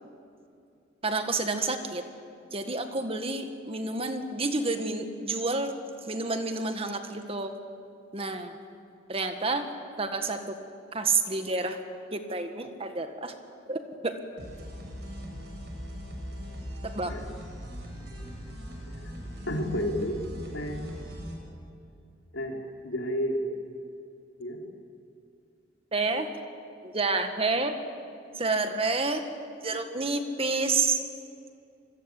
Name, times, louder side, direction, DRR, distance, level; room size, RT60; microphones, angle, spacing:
voice 1, 1.0-2.0 2.5-5.7 6.1-7.5 8.1-8.6 9.1-9.7 10.0-10.6 10.9-11.8 12.1-13.3 13.7-14.1 16.8-17.1 25.9-26.3 26.8-27.8 28.4-29.2 29.6-31.0, right 3 dB, 30° right, 6 dB, 1.8 m, -29 dB
sound 1, 14.4-21.3, equal, 55° right, 6.7 m, -40 dB
voice 2, 18.8-20.2 20.5-20.9 22.3-23.5 24.4-24.6, equal, 80° left, 1 dB, 4.3 m, -32 dB
27.0 x 22.0 x 8.5 m, 2.5 s
head